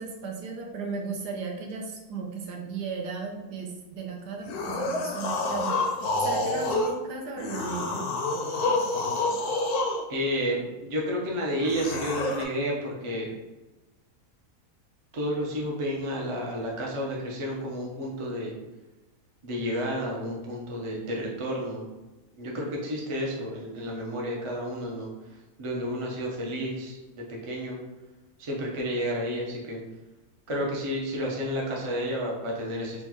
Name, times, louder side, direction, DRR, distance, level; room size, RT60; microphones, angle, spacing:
voice 1, 0.0-5.9 6.2-8.0, right 4 dB, 85° right, 2 dB, 1.2 m, -35 dB
sound 1, 4.5-7.0 7.4-10.0 11.6-12.4, left 2 dB, 75° left, 1.1 m, -28 dB
voice 2, 10.1-13.3 15.1-18.5 19.4-21.8 22.4-25.1 25.6-27.8 28.4-29.8 30.5-33.0, equal, 45° right, -3 dB, 0.4 m, -31 dB
4.2 x 2.3 x 2.9 m, 1.1 s
omnidirectional pair, 1.7 m